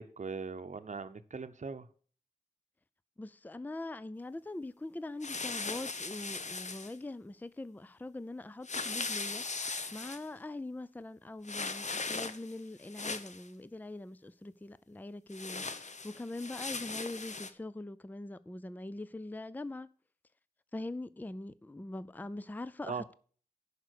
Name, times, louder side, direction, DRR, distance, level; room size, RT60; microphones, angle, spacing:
voice 1, 0.0-1.9 22.8-23.1, right 5 dB, 50° right, 0.9 m, -40 dB
voice 2, 3.2-19.9 20.7-23.1, left 2 dB, 10° left, 0.5 m, -43 dB
sound 1, 5.2-6.9 8.6-10.2 11.4-12.5 12.8-13.5 15.3-17.5, left 4 dB, 50° left, 1.0 m, -38 dB
11.0 x 5.1 x 6.6 m
wide cardioid pair, 85°, 16 cm